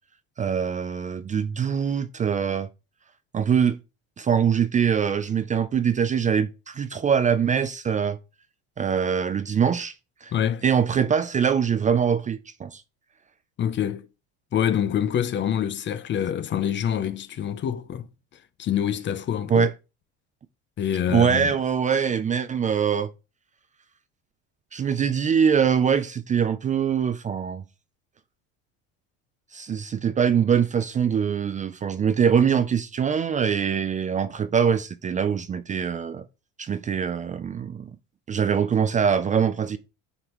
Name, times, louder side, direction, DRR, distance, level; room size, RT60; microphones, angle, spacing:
voice 1, 0.4-2.7 3.3-3.8 4.2-8.2 8.8-9.9 10.2-10.3 10.6-12.8 19.5-19.7 21.1-23.1 24.7-27.6 29.5-36.2 36.6-37.9 38.3-39.8, right 7 dB, 25° right, 0.4 m, -23 dB
voice 2, 10.3-10.6 13.6-14.0 14.5-18.1 18.6-19.7 20.8-21.5, left 9 dB, 35° left, 0.6 m, -26 dB
9.7 x 5.1 x 3.1 m
cardioid pair, 120°, 33 cm